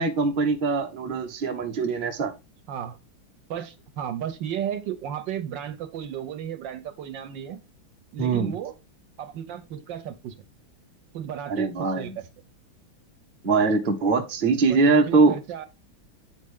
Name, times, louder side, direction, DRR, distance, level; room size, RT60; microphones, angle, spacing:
voice 1, 0.0-2.3 8.2-8.5 11.5-12.1 13.4-15.3, right 4 dB, 35° right, 0.8 m, -22 dB
voice 2, 3.5-7.6 8.1-8.7 9.2-10.5 11.1-12.3 14.6-15.7, right 9 dB, 70° right, 1.4 m, -34 dB
9.0 x 4.3 x 3.6 m
omnidirectional pair, 2.2 m